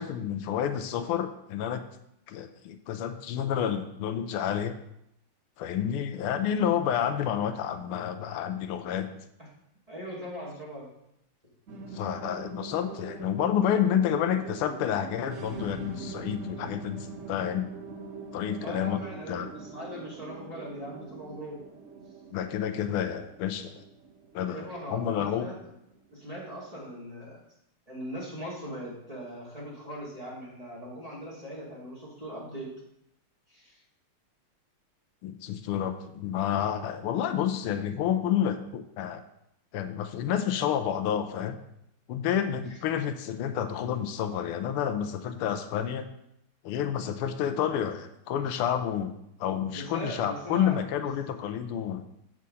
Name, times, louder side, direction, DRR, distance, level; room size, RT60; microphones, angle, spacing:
voice 1, 0.0-1.8 2.3-4.8 5.6-9.1 11.9-17.7 18.3-19.0 19.3-19.5 22.3-23.8 24.3-25.5 35.2-39.2 39.7-41.6 42.1-46.1 46.6-49.1 49.4-52.0, left 9 dB, 85° left, 8 dB, 1.5 m, -29 dB
voice 2, 9.9-10.9 18.6-21.6 24.4-25.6 26.1-27.4 27.9-32.7 33.5-33.8 42.7-42.8 49.7-51.1, equal, 15° right, -5 dB, 2.2 m, -40 dB
sound 1, 11.7-26.3, right 3 dB, 70° right, 0.7 m, -43 dB
7.6 x 7.4 x 4.1 m, 0.79 s
omnidirectional pair, 2.4 m